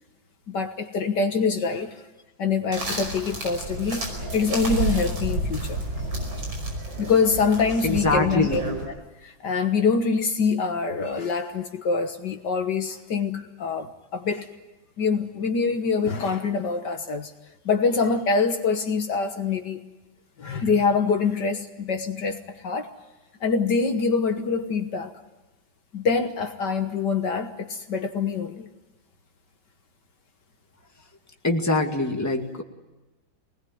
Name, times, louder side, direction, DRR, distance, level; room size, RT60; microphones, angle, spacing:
voice 1, 0.5-1.9 2.4-5.8 7.0-8.6 9.2-14.5 15.0-17.3 17.7-19.8 20.4-22.9 23.4-25.1 25.9-28.7, left 5 dB, 60° left, 5 dB, 1.9 m, -25 dB
sound 1, 2.7-8.9, right 1 dB, 90° right, 6.2 m, -30 dB
voice 2, 7.8-8.6 31.4-32.6, left 2 dB, 10° left, 2 dB, 2.0 m, -23 dB
24.5 x 20.0 x 9.5 m, 1.1 s
omnidirectional pair, 2.1 m